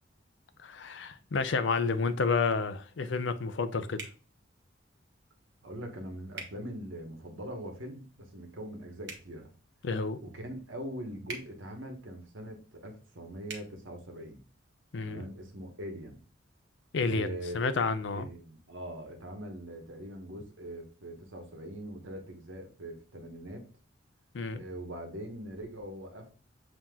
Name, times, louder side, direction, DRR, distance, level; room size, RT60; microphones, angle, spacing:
voice 1, 0.6-4.1 9.8-10.2 14.9-15.3 16.9-17.3 17.5-18.3 24.3-24.6, left 4 dB, 65° left, 11 dB, 0.5 m, -30 dB
sound 1, 4.0-4.2 6.3-6.5 9.0-9.3 11.2-11.5 13.4-13.6, right 4 dB, 60° right, 1.1 m, -41 dB
voice 2, 5.6-9.5 10.2-14.4 15.0-16.2 17.0-17.7 18.1-23.6 24.5-26.3, right 1 dB, 90° right, 4 dB, 1.1 m, -42 dB
7.3 x 2.9 x 2.3 m, 0.36 s
head